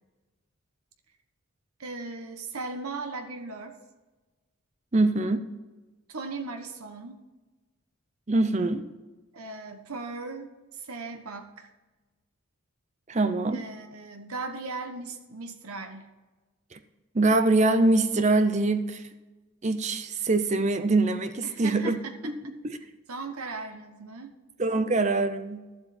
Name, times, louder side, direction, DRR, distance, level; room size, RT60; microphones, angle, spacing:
voice 1, 1.8-3.8 6.1-7.2 9.3-11.7 13.5-16.1 21.4-22.3 22.7-22.8 23.1-24.3, right 3 dB, 90° right, 5 dB, 1.1 m, -38 dB
voice 2, 4.9-5.5 8.3-8.8 13.1-13.6 16.7-16.8 17.1-19.0 19.6-22.0 22.2-22.8 24.6-25.7, right 2 dB, 30° right, 10 dB, 0.6 m, -24 dB
12.0 x 7.9 x 4.2 m, 1.2 s
head